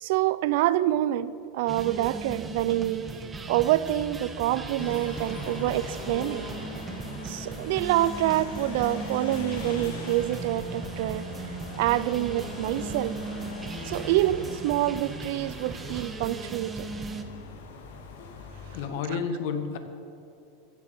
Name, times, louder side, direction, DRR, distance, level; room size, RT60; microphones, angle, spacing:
voice 1, 0.0-3.1 3.5-6.5 7.2-11.3 11.8-13.2 13.8-16.9 19.1-19.2, right 14 dB, 65° right, 0.6 m, -26 dB
sound 1, 1.7-17.2, right 3 dB, 15° right, 1.1 m, -38 dB
sound 2, 4.8-18.8, left 4 dB, 80° left, 2.1 m, -41 dB
voice 2, 18.7-19.8, left 6 dB, 65° left, 1.5 m, -31 dB
15.0 x 8.2 x 7.9 m
supercardioid pair, 135°, 0 cm